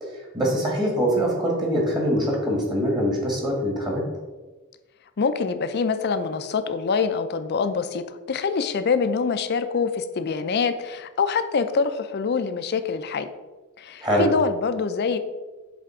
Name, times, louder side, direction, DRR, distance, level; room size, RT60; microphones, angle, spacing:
voice 1, 0.0-4.0 14.0-14.3, equal, 20° right, -1 dB, 1.5 m, -23 dB
voice 2, 5.2-13.3 13.8-15.2, left 5 dB, 50° left, 10 dB, 0.5 m, -25 dB
7.5 x 3.4 x 4.8 m, 1.2 s
head